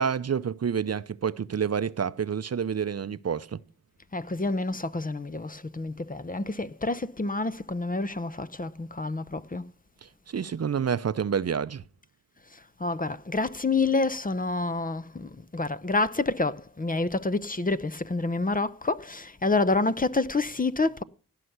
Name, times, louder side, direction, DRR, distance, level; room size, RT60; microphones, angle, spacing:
voice 1, 0.0-3.6 10.3-11.8, right 7 dB, 45° right, 0.7 m, -28 dB
voice 2, 4.1-9.7 12.5-21.0, left 3 dB, 25° left, 0.8 m, -28 dB
16.5 x 5.7 x 8.0 m
cardioid pair, 45°, 34 cm